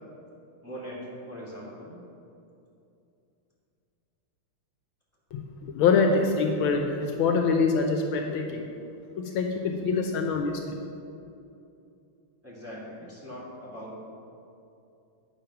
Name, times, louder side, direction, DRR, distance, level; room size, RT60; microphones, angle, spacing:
voice 1, 0.6-1.0 1.3-2.0 12.4-14.0, equal, 5° right, -8 dB, 2.0 m, -41 dB
voice 2, 5.3-8.6 9.2-10.8, left 4 dB, 75° left, 3 dB, 1.4 m, -25 dB
8.9 x 5.4 x 5.7 m, 2.7 s
omnidirectional pair, 2.3 m